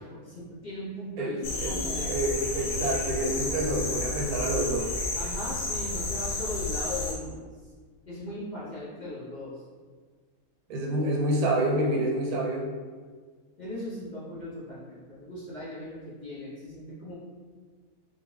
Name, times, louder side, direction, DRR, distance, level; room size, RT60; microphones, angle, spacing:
voice 1, 0.0-2.3 5.1-7.4 8.1-9.6 13.6-17.1, left 1 dB, 50° left, -9 dB, 0.5 m, -38 dB
voice 2, 1.2-1.8 2.0-4.9 10.7-12.7, right 1 dB, 85° right, -1 dB, 1.1 m, -28 dB
sound 1, 1.4-7.1, left 2 dB, 80° left, 1.3 m, -31 dB
2.7 x 2.5 x 3.0 m, 1.5 s
omnidirectional pair, 1.5 m